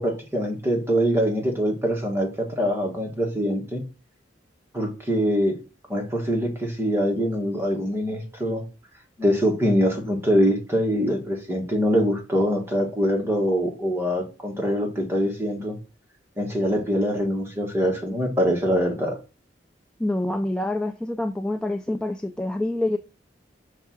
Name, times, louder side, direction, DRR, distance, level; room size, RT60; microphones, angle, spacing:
voice 1, 0.0-3.8 4.7-5.6 5.9-8.6 9.2-15.8 16.4-19.2, equal, 15° right, 1.5 m, -24 dB
voice 2, 20.0-23.0, left 1 dB, 5° left, 0.3 m, -26 dB
5.6 x 3.6 x 5.9 m
head